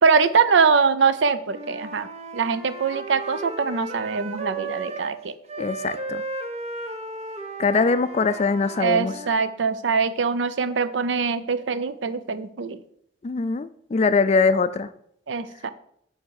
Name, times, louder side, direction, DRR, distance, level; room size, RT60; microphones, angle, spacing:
voice 1, 0.0-5.3 8.8-12.8 15.3-15.7, right 5 dB, 75° right, 12 dB, 0.5 m, -23 dB
Wind instrument woodwind instrument, 1.4-5.2 5.5-9.3, right 2 dB, 35° right, 0.7 m, -35 dB
voice 2, 5.6-6.2 7.6-9.1 13.2-14.9, left 4 dB, 35° left, 13 dB, 0.3 m, -22 dB
7.7 x 3.5 x 6.4 m, 0.71 s
head